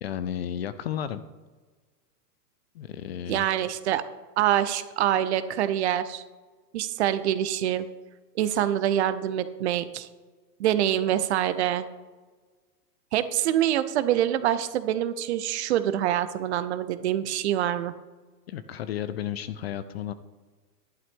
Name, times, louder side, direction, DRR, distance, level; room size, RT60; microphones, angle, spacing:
voice 1, 0.0-1.3 2.7-3.5 18.5-20.1, left 10 dB, 40° left, 13 dB, 0.4 m, -33 dB
voice 2, 3.3-4.0 4.4-6.2 6.7-7.9 8.3-10.1 10.6-11.9 13.1-17.9, right 11 dB, 45° right, 13 dB, 0.6 m, -25 dB
11.0 x 11.0 x 3.5 m, 1.4 s
hypercardioid pair, 130°, 49 cm